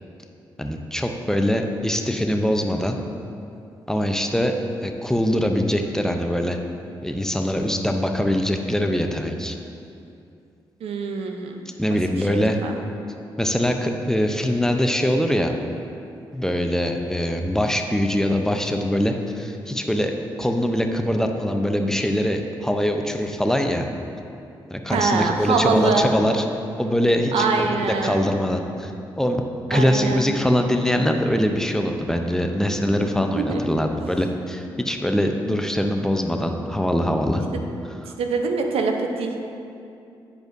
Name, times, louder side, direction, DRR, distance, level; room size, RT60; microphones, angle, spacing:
voice 1, 0.6-3.0 3.9-4.5 4.8-6.6 7.0-9.6 11.8-12.6 13.4-15.5 16.3-23.9 24.7-26.4 26.8-28.9 29.2-29.4 29.7-37.4, equal, 5° left, 4 dB, 0.6 m, -23 dB
voice 2, 10.8-11.6 11.9-12.0 12.3-12.8 24.9-26.1 27.3-28.2 29.7-30.2 33.0-33.1 33.4-33.6 38.2-39.3, right 4 dB, 75° right, 4 dB, 0.6 m, -24 dB
9.6 x 4.9 x 2.6 m, 2.6 s
supercardioid pair, 50°, 10 cm